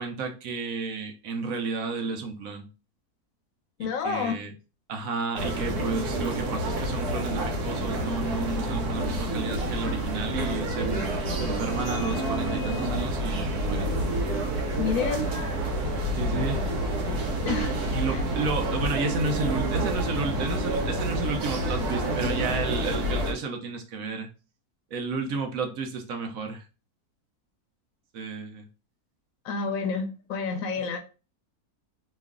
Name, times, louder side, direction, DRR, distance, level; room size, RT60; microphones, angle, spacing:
voice 1, 0.0-2.7 4.0-4.5 4.9-11.1 11.4-13.9 16.2-16.6 17.9-24.3 24.9-26.7 28.1-28.7, right 4 dB, 65° right, 1.0 m, -32 dB
voice 2, 3.8-4.4 14.8-15.2 17.4-17.7 18.1-18.2 29.4-31.0, left 5 dB, 70° left, 0.9 m, -29 dB
sound 1, 5.3-23.3, right 1 dB, 85° right, 1.3 m, -28 dB
3.0 x 2.4 x 3.5 m
omnidirectional pair, 1.6 m